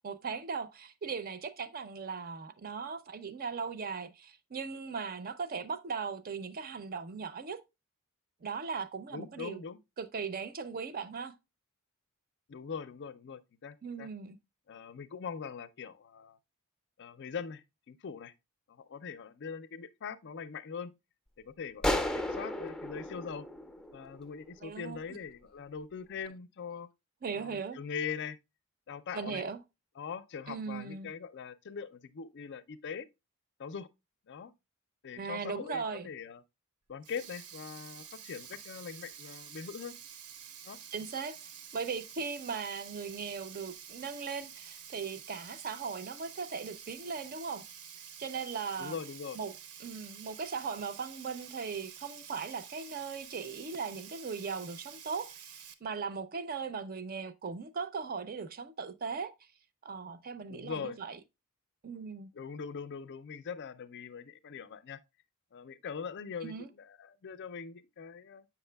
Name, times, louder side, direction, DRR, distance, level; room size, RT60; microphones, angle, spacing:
voice 1, 0.0-7.6 8.4-9.6 10.0-11.3 13.8-14.4 24.6-25.2 27.2-27.8 29.1-29.6 30.5-31.1 35.2-36.1 40.9-41.3 41.7-47.6 48.2-49.0 49.3-49.5 49.8-59.3 59.8-61.2 61.8-62.3 66.4-66.7, right 5 dB, 40° right, 0.5 m, -38 dB
voice 2, 9.1-9.8 12.5-14.1 14.7-16.4 17.0-18.3 18.7-20.9 21.4-23.5 23.9-26.9 27.3-28.4 28.9-29.4 30.0-33.1 33.6-33.9 34.3-34.5 35.0-36.4 36.9-39.9 40.6-40.8 48.8-49.4 60.5-61.0 62.3-65.0 65.5-68.4, left 6 dB, 55° left, 0.5 m, -42 dB
sound 1, 21.8-24.4, left 1 dB, 5° left, 0.5 m, -34 dB
Sink (filling or washing), 36.9-55.7, right 8 dB, 85° right, 0.8 m, -49 dB
7.9 x 5.8 x 2.2 m
head